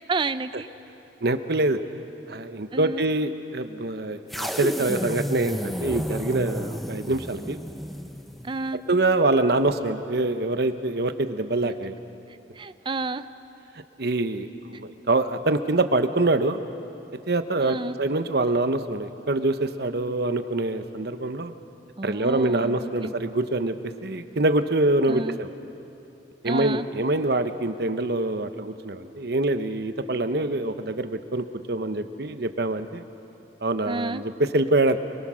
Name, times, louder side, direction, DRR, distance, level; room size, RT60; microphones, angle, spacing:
voice 1, 0.1-0.7 1.8-1.9 2.7-3.1 8.4-8.8 11.6-11.7 12.3-13.3 17.6-18.0 22.0-23.1 25.1-25.4 26.4-26.9 33.9-34.2, right 3 dB, 30° right, 12 dB, 0.5 m, -31 dB
voice 2, 1.2-1.8 2.3-7.6 8.9-12.0 14.0-16.6 17.3-21.5 22.0-23.7 24.0-25.5 26.4-33.0 33.6-35.0, right 2 dB, 65° right, 9 dB, 1.0 m, -25 dB
sound 1, 4.3-8.6, equal, ahead, 0.8 m, -31 dB
27.0 x 22.5 x 6.4 m, 3.0 s
head